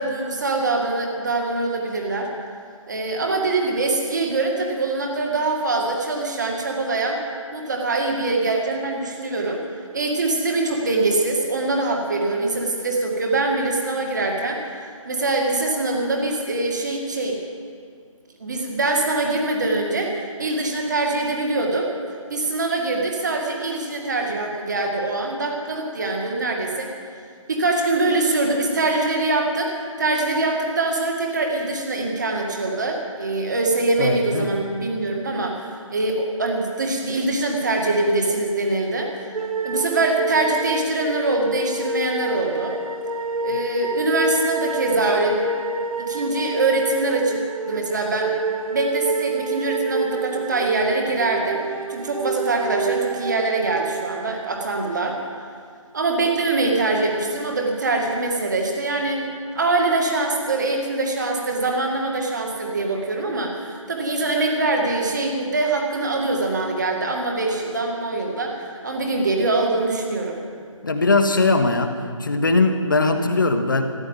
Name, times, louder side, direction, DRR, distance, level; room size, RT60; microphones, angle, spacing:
voice 1, 0.0-2.3 2.9-7.2 7.5-9.6 9.9-14.6 15.0-17.4 18.4-21.9 22.3-26.9 27.5-39.1 39.6-42.8 43.4-45.5 46.1-48.4 48.7-51.6 51.9-55.2 55.9-70.4, right 2 dB, 35° right, 1 dB, 2.0 m, -23 dB
voice 2, 34.0-34.5 70.8-73.8, left 3 dB, 35° left, 7 dB, 1.0 m, -20 dB
sound 1, 39.3-54.5, right 3 dB, 85° right, 1.1 m, -28 dB
14.5 x 10.5 x 9.0 m, 2.1 s
hypercardioid pair, 175°, 18 cm